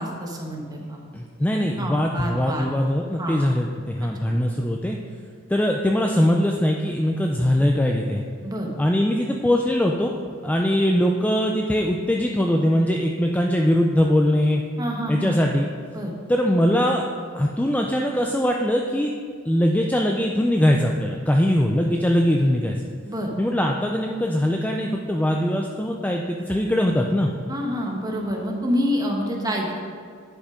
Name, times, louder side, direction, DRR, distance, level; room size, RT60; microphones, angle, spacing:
voice 1, 0.0-1.0 1.8-2.8 3.2-3.4 4.2-4.3 8.4-8.7 14.8-15.4 15.9-16.1 23.0-23.3 27.5-29.8, equal, 20° right, 0 dB, 1.2 m, -27 dB
voice 2, 1.1-5.0 5.5-8.2 8.8-10.2 10.4-14.6 15.1-15.7 16.3-17.0 17.3-19.1 19.5-22.8 23.4-27.3, equal, 5° left, 1 dB, 0.4 m, -21 dB
10.5 x 5.2 x 5.0 m, 2.1 s
head